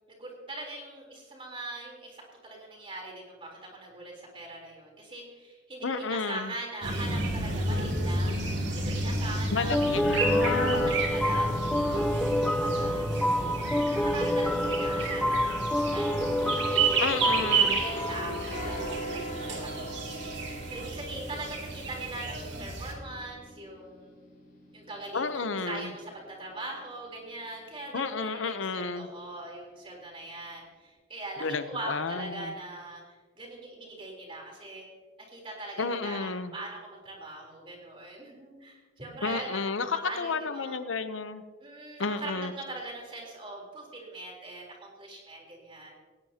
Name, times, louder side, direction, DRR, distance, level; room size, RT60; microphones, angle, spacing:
voice 1, 0.0-9.8 10.5-13.6 13.9-20.0 20.7-24.1 24.7-33.0 33.4-34.9 35.3-39.6 39.9-40.7 41.6-45.9, right 2 dB, 30° right, -1 dB, 3.8 m, -41 dB
voice 2, 5.8-6.5 9.5-10.9 17.0-17.8 25.1-25.9 27.9-29.1 31.4-32.5 35.8-36.5 39.2-41.4 42.0-42.5, left 4 dB, 85° left, 11 dB, 0.8 m, -31 dB
sound 1, 6.8-22.9, right 3 dB, 65° right, 2.7 m, -31 dB
sound 2, 9.7-19.0, equal, 5° left, 0.4 m, -28 dB
sound 3, 16.0-27.6 28.0-28.3, equal, 45° left, 5.1 m, -42 dB
18.5 x 16.0 x 2.9 m, 1.4 s
head